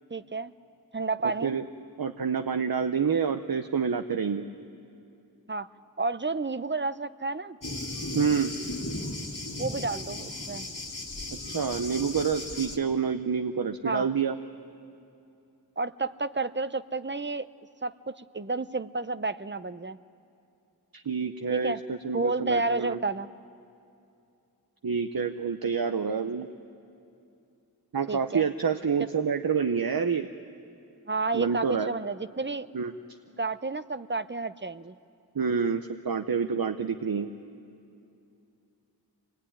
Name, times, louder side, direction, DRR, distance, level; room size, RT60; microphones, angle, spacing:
voice 1, 0.1-0.5 0.9-1.6 5.5-5.7 6.0-7.6 9.6-10.7 13.8-14.1 15.8-17.5 17.8-20.0 21.5-21.8 22.1-23.3 28.1-28.5 29.0-29.1 31.1-32.7 33.4-35.0, right 3 dB, 30° right, 14 dB, 0.6 m, -31 dB
voice 2, 1.2-1.6 2.0-4.5 8.1-8.5 11.5-14.4 20.9-23.0 24.8-26.5 27.9-30.3 31.3-31.9 32.7-32.9 35.3-37.3, right 6 dB, 65° right, 8 dB, 0.7 m, -28 dB
Thunder, 7.6-12.8, left 2 dB, 55° left, 2.0 m, -36 dB
24.5 x 19.5 x 9.9 m, 2.6 s
wide cardioid pair, 40°, 38 cm